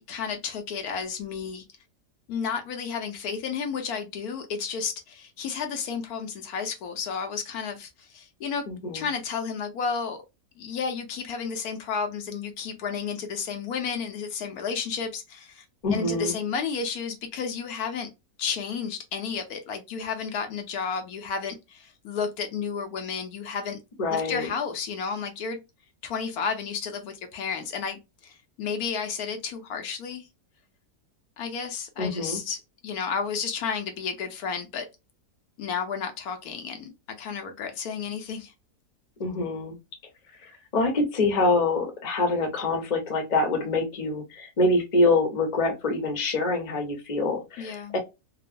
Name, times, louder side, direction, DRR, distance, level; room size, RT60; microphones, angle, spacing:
voice 1, 0.0-1.6 2.3-8.6 8.9-10.2 10.6-15.6 15.9-18.1 18.4-23.8 24.1-25.6 26.0-30.3 31.4-34.8 35.6-36.9 37.2-38.5 47.6-47.9, left 6 dB, 75° left, 1.1 m, -32 dB
voice 2, 8.7-9.1 15.8-16.4 24.0-24.5 32.0-32.4 39.2-39.8 40.4-48.0, left 2 dB, 35° left, 0.7 m, -25 dB
2.9 x 2.0 x 2.4 m
omnidirectional pair, 1.7 m